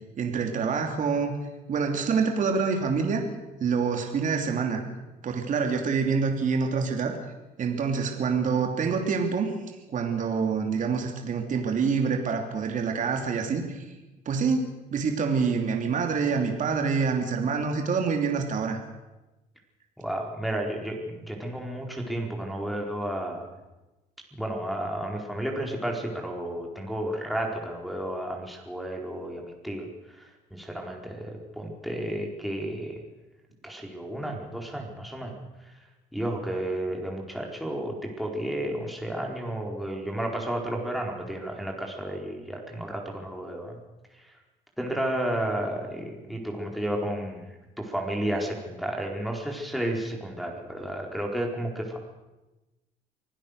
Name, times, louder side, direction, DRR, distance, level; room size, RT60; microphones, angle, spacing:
voice 1, 0.1-1.4 1.7-3.2 3.6-4.8 5.2-7.2 7.6-9.5 9.9-13.9 14.2-18.8, right 5 dB, 50° right, 3 dB, 2.9 m, -26 dB
voice 2, 20.0-23.5 24.4-29.9 30.2-33.0 33.6-35.4 36.1-43.8 44.2-44.3 44.8-47.5 47.8-52.0, right 1 dB, ahead, 0 dB, 4.3 m, -32 dB
24.5 x 16.0 x 6.6 m, 1.1 s
cardioid pair, 110°, 17 cm